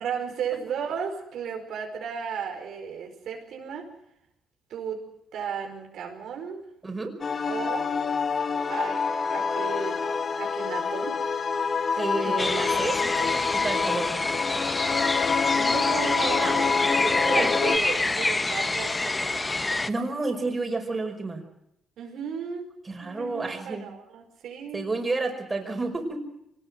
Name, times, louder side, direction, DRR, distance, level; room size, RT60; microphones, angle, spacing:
voice 1, 0.0-3.9 4.7-5.0 5.3-6.6 7.5-7.9 8.7-9.0 9.3-10.0 10.4-11.2 11.9-12.3 15.5-19.6 22.0-22.7 23.0-24.9, right 7 dB, 75° right, 2 dB, 4.9 m, -34 dB
voice 2, 6.8-7.2 11.9-14.1 16.4-16.7 17.0-17.5 19.9-21.4 22.9-23.9 24.7-26.2, right 3 dB, 25° right, 3 dB, 5.4 m, -30 dB
sound 1, 7.2-17.8, left 5 dB, 45° left, 1.4 m, -27 dB
sound 2, 12.4-19.9, left 2 dB, 20° left, 1.0 m, -27 dB
24.0 x 19.5 x 7.7 m, 0.79 s
cardioid pair, 90°, 0 cm